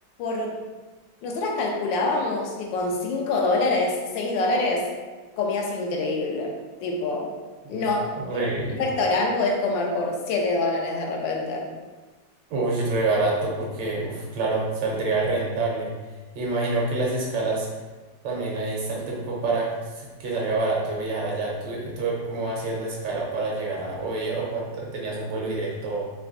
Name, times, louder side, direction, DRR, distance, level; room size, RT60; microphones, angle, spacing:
voice 1, 0.2-0.6 1.2-4.9 5.4-6.5 6.8-7.3 7.7-8.1 8.7-11.7, left 2 dB, 85° left, 0 dB, 1.4 m, -25 dB
voice 2, 8.2-8.7 12.5-15.9 16.3-17.7 18.2-26.1, right 3 dB, 85° right, -3 dB, 1.6 m, -27 dB
3.9 x 3.3 x 2.6 m, 1.3 s
omnidirectional pair, 2.0 m